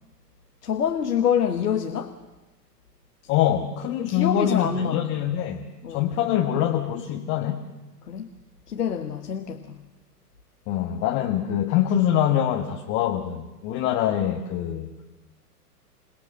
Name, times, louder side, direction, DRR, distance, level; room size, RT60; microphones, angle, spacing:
voice 1, 0.6-2.1 4.0-5.0 5.8-6.0 8.1-8.3 8.7-9.8, left 8 dB, 70° left, 7 dB, 1.3 m, -26 dB
voice 2, 3.3-5.6 5.9-7.7 10.7-14.9, left 10 dB, 30° left, 4 dB, 1.3 m, -24 dB
27.5 x 18.0 x 6.5 m, 1.1 s
figure-of-eight pair, 110°, 48 cm